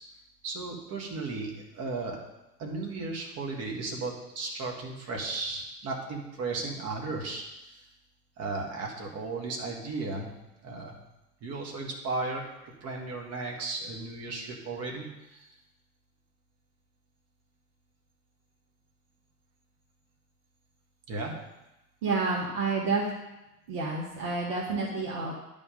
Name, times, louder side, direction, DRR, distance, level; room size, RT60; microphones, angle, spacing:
voice 1, 0.4-2.2 2.6-7.9 8.4-10.3 10.6-11.0 11.4-12.4 12.8-15.5 21.1-21.4, right 3 dB, 30° right, 0 dB, 1.7 m, -35 dB
voice 2, 22.0-23.1 23.7-25.3, right 3 dB, 50° right, -3 dB, 1.6 m, -29 dB
10.5 x 3.7 x 5.3 m, 0.96 s
figure-of-eight pair, 85°, 48 cm